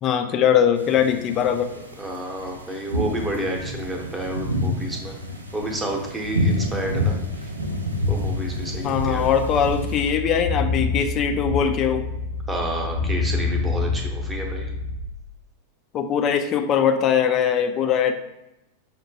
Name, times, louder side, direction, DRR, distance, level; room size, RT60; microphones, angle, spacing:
voice 1, 0.0-1.7 8.8-12.1 15.9-18.1, left 8 dB, 30° left, 7 dB, 0.3 m, -21 dB
sound 1, 0.8-10.1, left 1 dB, 80° right, 0.4 m, -28 dB
voice 2, 2.0-5.1 5.5-7.1 7.4-7.5 8.1-9.2 12.5-14.7, right 1 dB, 10° right, 1 dB, 0.8 m, -30 dB
sound 2, 8.9-14.9, left 3 dB, 85° left, 0.6 m, -27 dB
5.5 x 2.1 x 2.7 m, 0.90 s
figure-of-eight pair, 90°, 0 cm